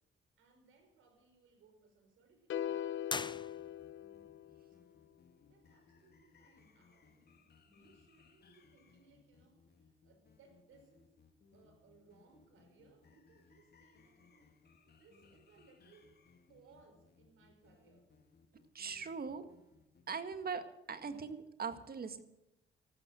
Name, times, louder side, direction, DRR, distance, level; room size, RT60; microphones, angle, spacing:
voice 1, 0.4-3.1 4.7-4.9 5.5-11.2 11.5-14.5 15.0-16.2 16.5-18.1, right 4 dB, 80° right, 5 dB, 5.2 m, -66 dB
sound 1, 2.5-4.8, left 10 dB, 70° left, 0.9 m, -41 dB
sound 2, 3.0-4.1, left 4 dB, 20° left, 0.8 m, -41 dB
sound 3, 3.3-20.0, left 5 dB, 50° left, 2.4 m, -66 dB
voice 2, 18.7-19.4 20.1-22.2, right 5 dB, 50° right, 9 dB, 1.8 m, -41 dB
14.5 x 12.5 x 7.7 m, 0.90 s
supercardioid pair, 60°, 21 cm